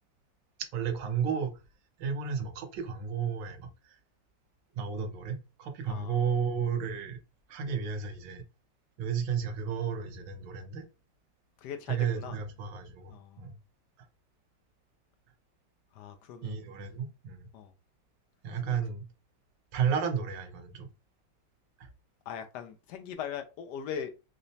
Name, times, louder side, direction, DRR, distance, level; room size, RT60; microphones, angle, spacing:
voice 1, 0.7-1.6 2.0-4.0 4.7-7.2 7.5-8.4 9.0-10.8 11.9-13.6 16.4-17.5 18.4-19.1 19.7-20.9 21.8-21.9, right 7 dB, 80° right, 1.5 m, -32 dB
voice 2, 5.9-6.2 11.6-12.4 13.1-13.4 16.0-16.6 17.5-17.7 18.6-18.8 22.3-24.1, left 8 dB, 75° left, 1.0 m, -40 dB
4.9 x 2.0 x 2.7 m
omnidirectional pair, 2.1 m